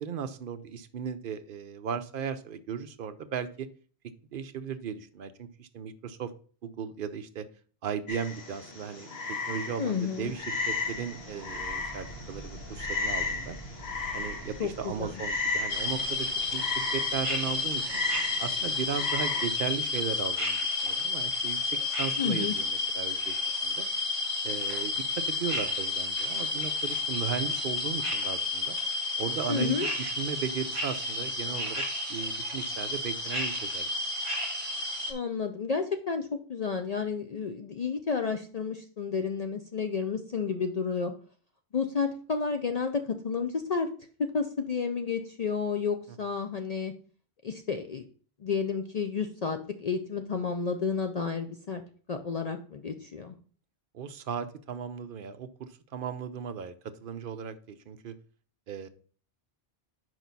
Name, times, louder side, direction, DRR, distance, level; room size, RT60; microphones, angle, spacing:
voice 1, 0.0-3.7 4.0-6.3 6.6-7.4 7.8-9.1 9.5-13.6 14.1-17.9 18.4-23.9 24.4-28.8 29.2-33.9 53.9-56.7 57.0-58.2 58.7-58.9, right 7 dB, 60° right, 10 dB, 0.7 m, -36 dB
Frog, 8.1-19.5, left 3 dB, 70° left, 1.7 m, -35 dB
voice 2, 9.8-10.3 14.6-15.1 22.2-22.5 29.5-29.9 35.1-41.1 41.7-43.9 44.2-46.9 47.4-48.0 48.4-51.8 52.1-53.3, left 5 dB, 50° left, 6 dB, 0.5 m, -31 dB
sound 1, 10.2-20.4, right 1 dB, ahead, 1.6 m, -48 dB
sound 2, 15.7-35.1, left 3 dB, 30° right, 1.5 m, -31 dB
6.3 x 5.0 x 4.0 m, 0.43 s
omnidirectional pair, 1.1 m